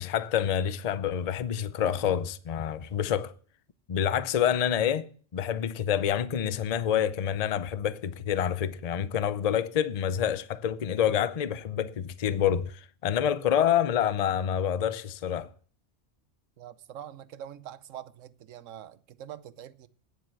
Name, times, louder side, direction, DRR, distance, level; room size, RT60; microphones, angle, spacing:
voice 1, 0.0-3.3 3.9-5.1 5.3-15.5, left 9 dB, 40° left, 0.6 m, -27 dB
voice 2, 16.6-19.9, right 10 dB, 90° right, 1.1 m, -44 dB
9.8 x 7.7 x 7.5 m
omnidirectional pair, 1.3 m